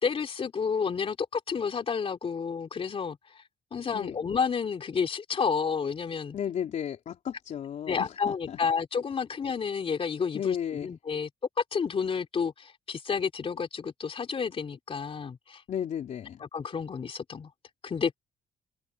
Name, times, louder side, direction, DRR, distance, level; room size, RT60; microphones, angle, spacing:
voice 1, 0.0-3.4 3.7-6.4 7.9-11.3 11.6-15.6 16.4-17.5 17.8-18.1, left 6 dB, 45° left, 3.2 m, -30 dB
voice 2, 6.3-8.6 10.3-10.9 15.7-16.4, left 9 dB, 65° left, 3.5 m, -34 dB
cardioid pair, 85°, 14 cm